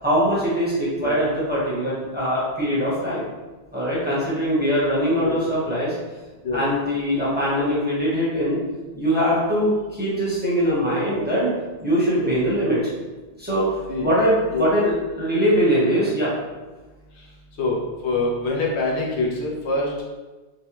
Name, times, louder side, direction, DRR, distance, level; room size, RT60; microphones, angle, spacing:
voice 1, 0.0-3.2 3.7-5.9 6.5-8.6 8.9-11.5 11.8-12.9 13.4-13.7 14.0-16.3, equal, 10° right, -9 dB, 0.9 m, -22 dB
voice 2, 18.0-20.0, left 3 dB, 90° left, -3 dB, 1.0 m, -25 dB
3.4 x 2.1 x 2.9 m, 1.2 s
omnidirectional pair, 1.1 m